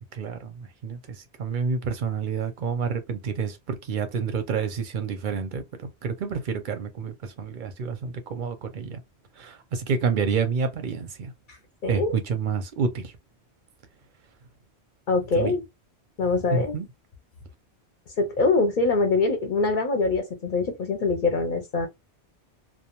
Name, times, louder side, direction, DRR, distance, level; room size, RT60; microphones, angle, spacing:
voice 1, 0.1-5.7 6.0-9.0 9.4-11.3 11.9-13.1 15.3-15.5 16.5-16.9, right 5 dB, 55° right, 0.6 m, -29 dB
voice 2, 11.8-12.1 15.1-15.6 16.2-16.7 18.2-21.9, left 3 dB, 55° left, 0.7 m, -23 dB
2.2 x 2.2 x 2.9 m
omnidirectional pair, 1.1 m